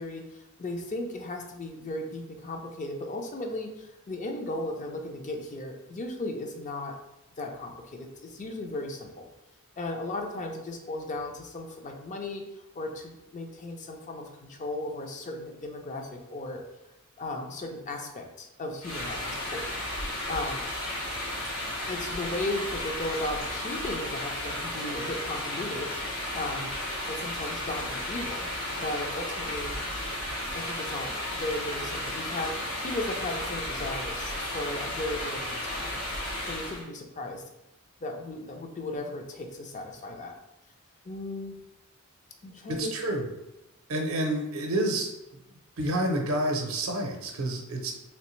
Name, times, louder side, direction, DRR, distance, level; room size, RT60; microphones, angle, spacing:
voice 1, 0.0-7.0 7.4-9.3 9.8-12.4 12.7-16.6 17.2-19.7 20.3-20.6 21.9-26.7 27.1-29.8 30.5-36.0 36.5-37.4 38.0-40.3 41.0-41.6 42.4-42.9, left 2 dB, 35° left, 3 dB, 0.5 m, -36 dB
sound 1, 18.8-36.9, left 1 dB, 65° left, 1.3 m, -34 dB
voice 2, 42.7-43.3 43.9-45.1 45.8-47.9, right 1 dB, 70° right, 2 dB, 0.6 m, -29 dB
3.2 x 3.2 x 3.1 m, 0.93 s
head